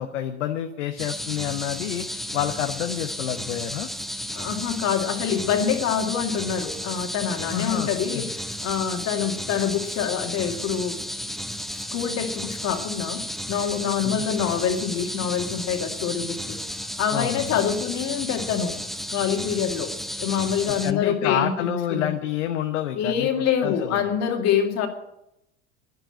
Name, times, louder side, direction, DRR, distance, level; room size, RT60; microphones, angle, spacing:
voice 1, 0.0-3.9 7.5-8.3 14.0-14.2 17.1-17.4 20.8-23.3 23.6-24.1, left 11 dB, 60° left, 7 dB, 1.1 m, -28 dB
sound 1, 1.0-20.9, equal, ahead, 0.5 m, -33 dB
voice 2, 4.3-11.0 11.7-16.6 17.0-18.8 19.1-22.1 22.9-24.9, left 8 dB, 40° left, 5 dB, 2.3 m, -26 dB
11.5 x 10.5 x 8.9 m, 0.84 s
figure-of-eight pair, 75°, 41 cm